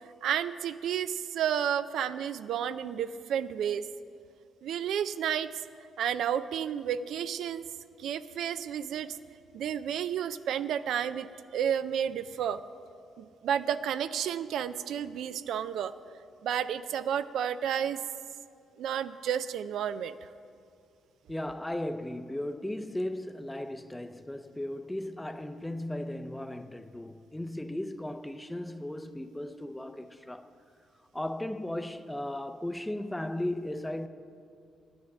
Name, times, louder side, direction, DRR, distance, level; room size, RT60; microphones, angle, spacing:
voice 1, 0.2-3.9 4.6-5.5 6.0-7.7 8.0-9.2 9.5-12.6 13.2-15.9 16.4-18.0 18.8-20.2, right 9 dB, 75° right, 0.4 m, -31 dB
voice 2, 21.3-30.5 31.1-34.1, left 1 dB, 10° left, 0.5 m, -36 dB
10.5 x 8.9 x 7.0 m
cardioid pair, 90°, 0 cm